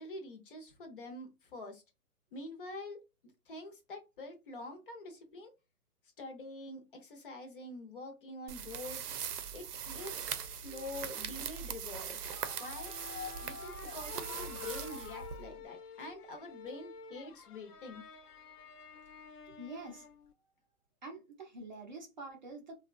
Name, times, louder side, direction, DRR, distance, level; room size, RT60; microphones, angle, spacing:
voice 1, 0.0-1.8 2.3-3.0 3.5-5.5 6.2-9.1 9.5-12.9 13.4-18.0, left 2 dB, 35° left, 4 dB, 0.6 m, -46 dB
sound 1, 8.5-15.6, right 8 dB, 85° right, 0.7 m, -41 dB
sound 2, 9.9-15.6, left 4 dB, 65° left, 0.9 m, -50 dB
sound 3, 12.8-20.3, left 6 dB, 90° left, 0.6 m, -51 dB
voice 2, 19.6-20.0 21.0-22.7, right 2 dB, 30° right, 1 dB, 0.5 m, -46 dB
2.6 x 2.2 x 2.4 m, 0.25 s
hypercardioid pair, 150°, 45 cm